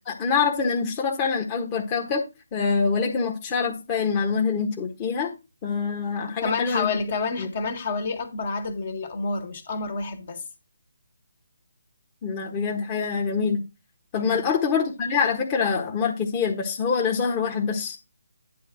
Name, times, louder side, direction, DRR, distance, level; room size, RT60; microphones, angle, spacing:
voice 1, 0.0-2.2 2.5-5.3 5.6-6.9 7.4-7.5 12.2-13.6 14.1-18.0, left 5 dB, 25° left, 1.4 m, -25 dB
voice 2, 6.2-10.4 14.1-14.5, left 4 dB, 45° left, 1.9 m, -29 dB
10.0 x 3.5 x 6.1 m
figure-of-eight pair, 155°, 0 cm